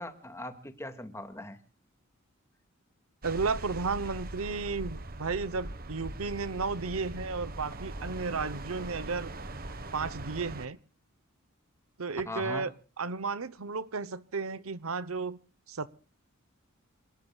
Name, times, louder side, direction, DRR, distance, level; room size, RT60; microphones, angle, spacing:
voice 1, 0.0-1.6 12.3-12.7, left 1 dB, 15° left, 7 dB, 2.1 m, -40 dB
sound 1, 3.2-10.7, right 2 dB, 45° right, 1.3 m, -41 dB
voice 2, 3.2-9.3 9.9-10.8 12.0-12.7 13.0-15.4 15.7-15.9, right 4 dB, 85° right, 17 dB, 0.9 m, -33 dB
27.5 x 19.5 x 2.4 m, 0.35 s
head